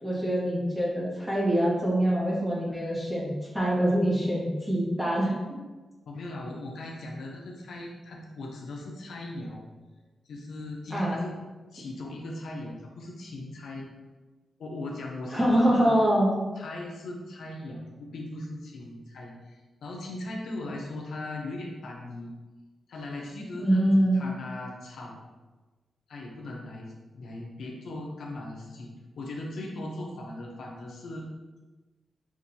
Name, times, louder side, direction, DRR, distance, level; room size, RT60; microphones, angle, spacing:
voice 1, 0.0-5.3 10.9-11.2 15.3-16.4 23.5-24.3, equal, 5° right, -6 dB, 1.1 m, -24 dB
voice 2, 6.1-9.7 10.2-11.3 11.7-13.9 14.6-15.9 16.6-22.3 22.9-25.2 26.1-28.9 29.2-31.3, left 2 dB, 70° left, -1 dB, 0.7 m, -39 dB
5.8 x 2.6 x 2.7 m, 1.2 s
wide cardioid pair, 165°, 0 cm